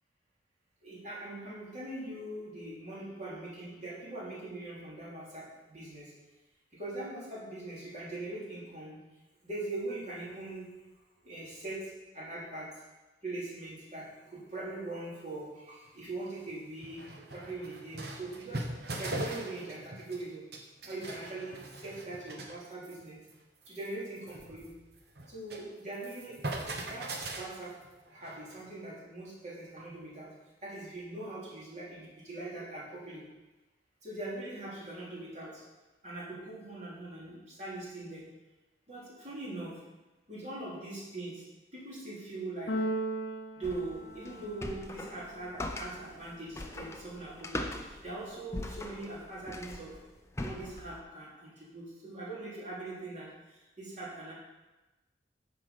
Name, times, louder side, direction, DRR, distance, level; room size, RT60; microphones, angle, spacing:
voice 1, 0.8-6.1 6.8-9.0 9.4-10.7 11.2-11.8 12.1-12.7 13.2-14.1 14.3-17.0 17.3-18.6 19.0-20.4 20.9-21.6 21.8-23.2 23.7-24.7 25.3-26.4 26.7-27.1 27.3-27.7 28.1-30.3 30.6-33.2 34.0-35.5 36.0-38.2 38.9-39.7 40.3-41.4 41.7-42.7 43.6-49.9 50.4-53.3 53.8-54.3, right 2 dB, 40° right, -6 dB, 3.3 m, -41 dB
sound 1, 15.9-16.0 16.5-16.6 16.8-20.3 20.5-22.6 22.8-23.0 23.3-23.4 23.6-25.7 25.9-28.6, right 1 dB, 60° right, 1.2 m, -40 dB
Keyboard (musical), 42.7-44.8, right 1 dB, 70° left, 0.8 m, -36 dB
sound 2, 43.6-51.0, left 1 dB, 15° left, 0.6 m, -41 dB
9.6 x 6.7 x 5.2 m, 1.1 s
head